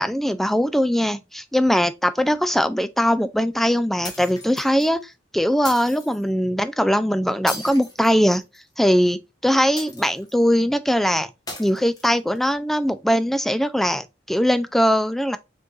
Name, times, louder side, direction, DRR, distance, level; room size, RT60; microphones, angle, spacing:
voice 1, 0.0-5.0 5.3-8.4 8.8-11.3 11.6-15.4, equal, ahead, 0.3 m, -21 dB
sound 1, 4.0-4.9 5.6-6.2 7.5-8.7 9.8-10.4 11.5-12.4, left 2 dB, 20° left, 1.6 m, -37 dB
5.1 x 3.9 x 2.4 m
head